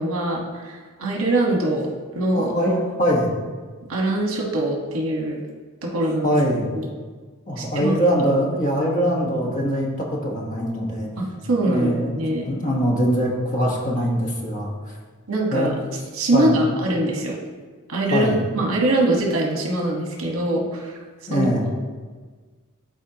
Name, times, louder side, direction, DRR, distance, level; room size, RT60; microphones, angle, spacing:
voice 1, 0.0-1.9 2.1-2.5 3.9-5.4 5.8-6.3 6.7-6.9 7.6-7.9 11.2-12.5 15.3-15.7 16.1-17.4 17.9-20.9 21.3-21.5, right 1 dB, 70° right, -1 dB, 1.3 m, -23 dB
voice 2, 2.3-3.3 6.2-6.7 7.5-11.1 11.6-12.2 12.4-14.7 15.5-15.7 16.3-16.6 18.1-18.4 21.3-21.7, equal, 35° left, -2 dB, 1.2 m, -22 dB
12.5 x 4.2 x 2.9 m, 1.4 s
head